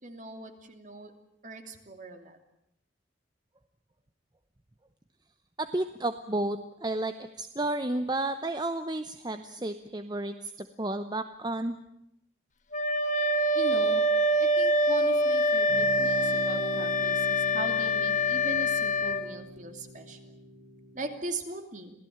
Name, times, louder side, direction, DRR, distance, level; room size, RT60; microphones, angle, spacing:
voice 1, 0.0-1.1 1.4-2.4 13.5-14.0 14.4-20.2 20.9-21.9, right 2 dB, 45° right, 6 dB, 2.8 m, -39 dB
voice 2, 5.6-11.8, right 2 dB, 25° right, 10 dB, 0.8 m, -32 dB
Wind instrument woodwind instrument, 12.7-19.3, left 1 dB, 40° left, 1.5 m, -25 dB
sound 1, 15.7-21.2, right 1 dB, 80° right, 5.4 m, -43 dB
26.5 x 17.0 x 8.7 m, 0.79 s
head